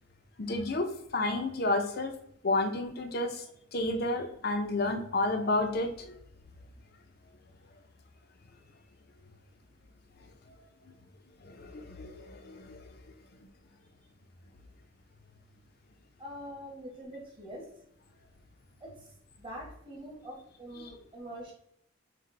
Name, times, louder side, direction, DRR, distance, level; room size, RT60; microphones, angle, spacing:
voice 1, 0.4-0.9 1.1-2.1 2.4-3.4 3.7-6.2 10.9-11.0 11.4-12.9 20.8-20.9, left 2 dB, 45° left, 5 dB, 0.5 m, -31 dB
voice 2, 16.2-17.6 18.8-18.9 19.4-21.5, equal, 25° right, -2 dB, 1.1 m, -44 dB
5.8 x 2.2 x 3.2 m, 0.73 s
head